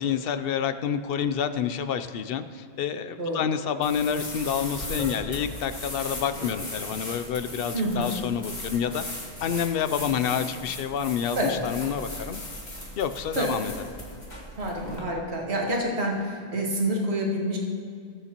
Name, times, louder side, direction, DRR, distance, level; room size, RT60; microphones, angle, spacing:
voice 1, 0.0-9.0 9.4-12.4 13.0-13.7, left 8 dB, 65° left, 11 dB, 0.7 m, -28 dB
sound 1, 3.8-15.0, left 1 dB, 40° left, 1.6 m, -37 dB
voice 2, 7.7-8.1 11.4-11.6 13.4-13.5 14.6-17.6, right 1 dB, 70° right, -2 dB, 1.8 m, -27 dB
19.5 x 6.9 x 2.9 m, 2.2 s
omnidirectional pair, 1.1 m